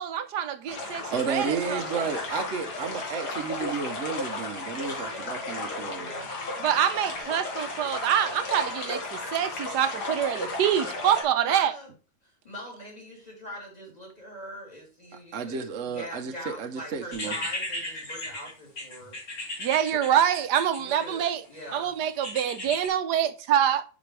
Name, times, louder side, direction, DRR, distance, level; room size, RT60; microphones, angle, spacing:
voice 1, 0.0-2.0 6.6-11.7 19.6-21.4 21.7-23.8, right 10 dB, 85° right, 1.4 m, -26 dB
sound 1, 0.7-11.2, left 2 dB, 75° left, 2.5 m, -34 dB
voice 2, 1.1-6.1 15.3-17.3, right 6 dB, 55° right, 1.1 m, -32 dB
voice 3, 5.0-7.3 11.5-11.9 12.4-19.2 20.8-21.9, equal, 25° left, 3.8 m, -43 dB
sound 2, 17.1-21.3 22.2-22.9, left 1 dB, 60° left, 2.9 m, -35 dB
10.5 x 5.2 x 3.3 m
omnidirectional pair, 1.7 m